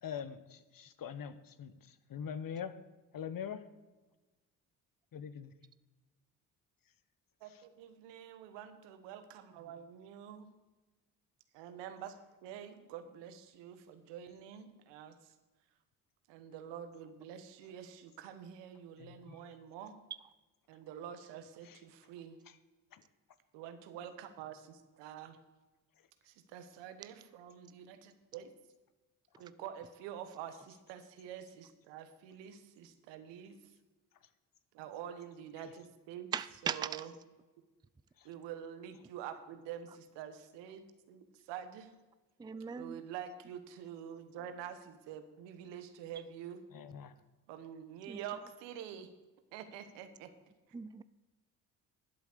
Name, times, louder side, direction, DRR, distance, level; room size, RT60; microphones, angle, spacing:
voice 1, 0.0-2.8 3.1-3.6 5.1-5.5 7.5-7.6 19.0-19.4 21.6-21.8 22.5-22.6 22.9-23.0 35.6-35.7 38.2-38.3 46.7-47.1, left 7 dB, 50° left, 13 dB, 1.1 m, -43 dB
voice 2, 7.4-10.5 11.5-15.3 16.3-20.0 20.7-22.4 23.5-25.4 26.2-28.5 29.4-33.6 34.7-36.3 36.6-37.1 38.2-41.9 42.8-46.6 47.5-49.1 49.5-50.3, right 9 dB, 85° right, 10 dB, 1.2 m, -47 dB
voice 3, 36.3-37.1 42.4-43.0 48.1-48.2 50.7-51.0, right 7 dB, 10° right, 15 dB, 0.4 m, -38 dB
11.5 x 7.9 x 6.7 m, 1.2 s
supercardioid pair, 55°, 42 cm